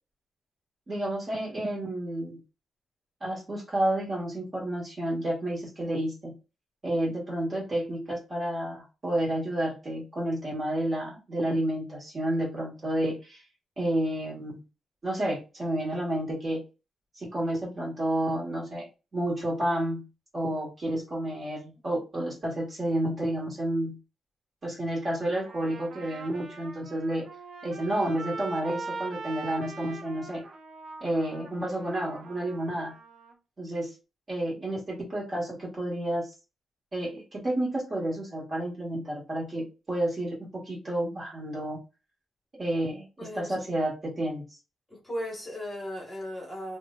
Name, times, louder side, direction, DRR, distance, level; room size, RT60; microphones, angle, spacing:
voice 1, 0.9-2.4 3.2-6.3 6.8-13.4 13.8-14.6 15.0-16.6 17.1-18.9 19.1-20.0 20.3-24.0 24.6-27.3 27.6-30.4 31.0-32.9 33.6-33.9 34.3-36.3 36.9-41.8 42.5-43.1 43.3-44.4, right 1 dB, 25° right, 1.2 m, -30 dB
Trumpet, 25.3-33.3, right 3 dB, 50° right, 0.6 m, -42 dB
voice 2, 44.9-46.8, equal, 10° left, 1.1 m, -36 dB
3.0 x 2.1 x 3.6 m
wide cardioid pair, 165°, 0 cm